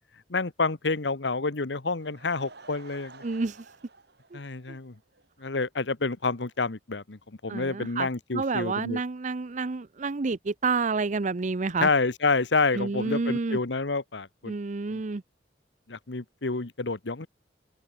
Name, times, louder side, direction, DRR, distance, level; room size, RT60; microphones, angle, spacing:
voice 1, 0.3-3.2 4.3-4.9 5.4-9.0 11.8-14.5 14.9-15.0 15.9-17.3, left 3 dB, 80° left, 1.2 m, -28 dB
Laughter / Crowd, 1.8-5.3 5.6-5.7 6.2-6.3 6.5-6.6, right 3 dB, 65° right, 5.2 m, -52 dB
voice 2, 3.2-3.7 4.3-4.4 4.7-4.8 7.5-11.9 12.7-13.6 14.5-15.2, right 4 dB, 45° right, 0.6 m, -29 dB
open air
head